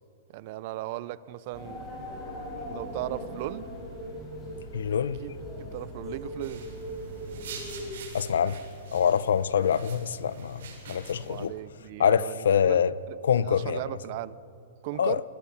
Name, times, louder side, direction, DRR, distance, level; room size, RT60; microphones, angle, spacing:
voice 1, 0.3-1.9 2.7-3.7 5.2-5.3 5.6-6.7 11.2-13.2 13.4-14.4 14.8-15.2, right 15 dB, 35° right, 19 dB, 0.5 m, -37 dB
sound 1, 1.5-7.9, equal, 10° left, 6.0 m, -39 dB
voice 2, 4.7-5.3 8.1-8.6 8.9-11.5 12.0-12.9 13.2-14.0 15.0-15.2, left 8 dB, 80° left, 17 dB, 0.8 m, -25 dB
sound 2, 6.4-11.5, right 4 dB, 60° right, 7.7 m, -45 dB
27.5 x 20.5 x 5.9 m, 2.6 s
hypercardioid pair, 175°, 0 cm